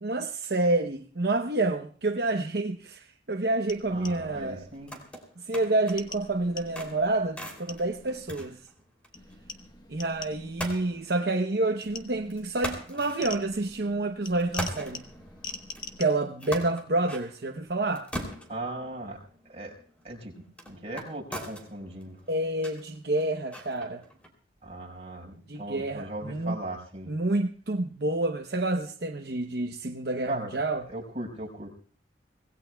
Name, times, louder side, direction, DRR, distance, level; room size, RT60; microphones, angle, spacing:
voice 1, 0.0-4.6 5.4-8.6 9.9-15.0 16.0-18.1 22.3-24.0 25.5-26.6 27.1-30.8, right 2 dB, 60° right, 4 dB, 0.8 m, -28 dB
sound 1, 3.7-5.1 5.9-8.7 9.1-11.3 11.8-16.0, left 4 dB, 20° left, 1.2 m, -45 dB
voice 2, 3.9-4.9 18.5-19.2 19.4-19.7 20.0-22.2 24.6-27.1 30.2-30.5 30.9-31.7, right 1 dB, 35° right, -1 dB, 5.0 m, -38 dB
sound 2, 4.7-6.1 6.5-9.3 9.6-9.7 10.6-11.9 12.3-13.9 14.3-24.3, equal, 5° left, 3.0 m, -42 dB
25.5 x 18.0 x 2.3 m, 0.43 s
head